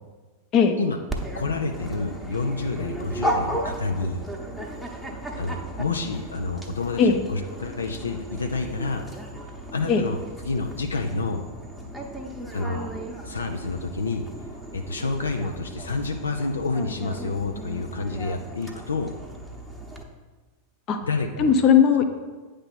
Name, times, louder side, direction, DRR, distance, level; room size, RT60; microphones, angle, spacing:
Dog, 1.1-20.0, right 1 dB, ahead, 0.9 m, -35 dB
voice 1, 1.3-4.2 5.4-9.0 9.7-10.2 10.4-11.4 12.5-12.9 13.2-14.2 14.7-19.1 21.0-21.5 22.0-22.1, left 3 dB, 75° left, 5 dB, 0.5 m, -29 dB
voice 2, 21.4-22.0, left 7 dB, 35° left, 7 dB, 0.7 m, -18 dB
8.9 x 3.3 x 5.8 m, 1.3 s
figure-of-eight pair, 90°, 0 cm